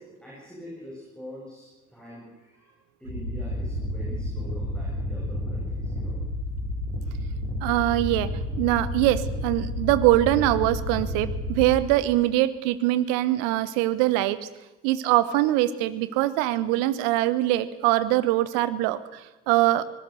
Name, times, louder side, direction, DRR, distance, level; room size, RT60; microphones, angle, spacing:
voice 1, 0.0-6.2, equal, 5° left, -5 dB, 7.8 m, -44 dB
sound 1, 3.0-11.8, left 1 dB, 90° right, 6.0 m, -31 dB
voice 2, 7.6-8.3 8.6-14.5 14.8-19.9, right 15 dB, 65° right, 15 dB, 1.1 m, -23 dB
25.0 x 18.5 x 6.6 m, 1.1 s
figure-of-eight pair, 45°, 36 cm